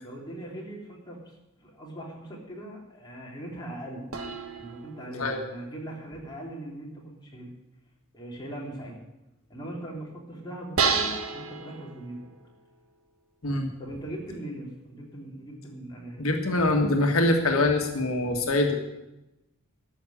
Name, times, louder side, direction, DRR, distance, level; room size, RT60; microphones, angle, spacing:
voice 1, 0.0-1.2 1.6-4.1 4.6-7.5 8.1-8.9 9.5-12.3 13.8-16.2, right 1 dB, 20° left, -3 dB, 3.6 m, -40 dB
sound 1, 4.1-6.2 10.8-12.6, right 5 dB, 90° right, 1.4 m, -31 dB
voice 2, 16.2-18.8, left 2 dB, 85° left, 3 dB, 1.7 m, -24 dB
13.5 x 6.5 x 10.0 m, 0.95 s
head